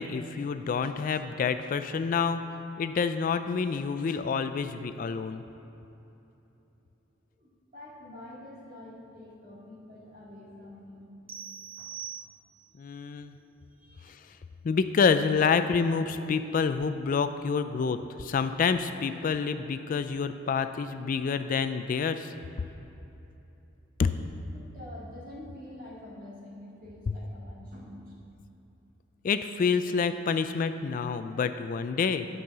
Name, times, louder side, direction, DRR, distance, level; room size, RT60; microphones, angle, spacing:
voice 1, 0.0-2.4 2.8-5.4 12.8-13.4 14.1-14.2 14.6-22.3 24.0-24.1 27.1-27.2 29.2-32.3, left 5 dB, 45° left, 10 dB, 0.3 m, -28 dB
voice 2, 7.4-11.1 11.3-11.4 11.8-11.9 13.7-14.3 24.5-28.1, left 1 dB, 45° right, -5 dB, 2.3 m, -47 dB
sound 1, 11.3-12.8, right 8 dB, 30° right, 0.8 m, -42 dB
10.5 x 5.5 x 6.7 m, 3.0 s
head